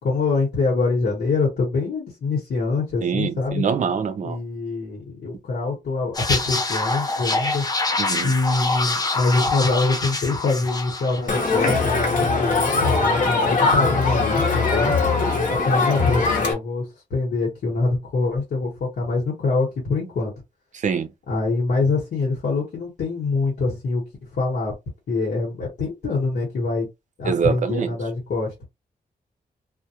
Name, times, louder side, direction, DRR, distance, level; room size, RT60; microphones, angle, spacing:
voice 1, 0.0-3.6 4.2-7.6 8.2-14.9 15.5-20.3 21.3-24.0 24.3-24.7 25.1-26.9 27.2-28.5, left 3 dB, 80° left, 1.0 m, -24 dB
voice 2, 3.0-4.4 8.0-8.3 15.2-15.4 20.8-21.1 27.3-27.9, right 6 dB, 50° right, 0.4 m, -24 dB
sound 1, 6.1-11.9 12.1-12.4, left 3 dB, 25° left, 0.4 m, -26 dB
Crowd, 11.3-16.5, left 3 dB, 55° left, 0.8 m, -21 dB
2.2 x 2.1 x 2.8 m
wide cardioid pair, 165°, 16 cm